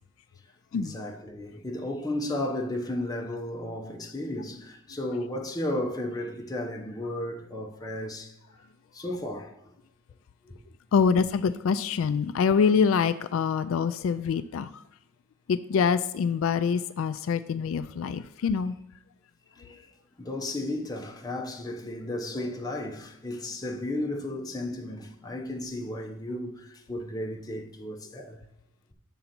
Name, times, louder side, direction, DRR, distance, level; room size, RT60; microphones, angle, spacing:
voice 1, 0.7-8.3 8.9-9.6 10.5-10.6 19.5-19.9 20.2-28.4, left 1 dB, 20° left, 0.9 m, -34 dB
voice 2, 10.9-14.8 15.5-18.8, left 6 dB, 75° left, 0.3 m, -25 dB
7.0 x 3.9 x 5.9 m
head